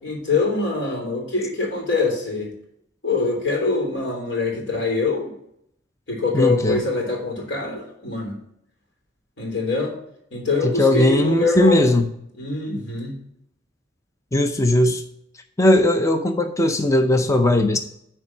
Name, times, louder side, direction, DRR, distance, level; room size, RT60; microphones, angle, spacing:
voice 1, 0.0-2.5 3.0-5.3 6.1-8.4 9.4-9.9 10.3-12.0 12.4-13.2, left 3 dB, 85° left, 1 dB, 3.4 m, -24 dB
voice 2, 6.3-6.8 10.6-12.0 14.3-15.0 15.6-17.8, left 1 dB, 15° left, 6 dB, 0.5 m, -18 dB
9.6 x 4.5 x 6.1 m, 0.73 s
head